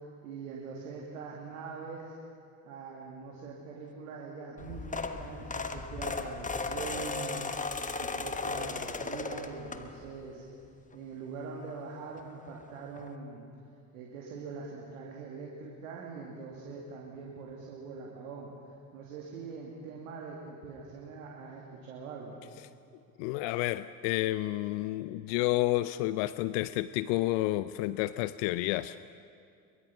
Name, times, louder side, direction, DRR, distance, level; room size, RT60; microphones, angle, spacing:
voice 1, 0.2-2.1 2.6-10.5 10.9-13.4 13.9-18.5 18.9-22.4, right 4 dB, 75° right, 2.5 m, -43 dB
sound 1, 4.6-10.2 10.7-10.9 12.2-12.3 12.5-12.6 13.0-13.1, left 3 dB, 20° left, 1.3 m, -36 dB
voice 2, 23.2-29.0, left 17 dB, 65° left, 0.6 m, -30 dB
22.5 x 22.5 x 5.8 m
hypercardioid pair, 60°, 41 cm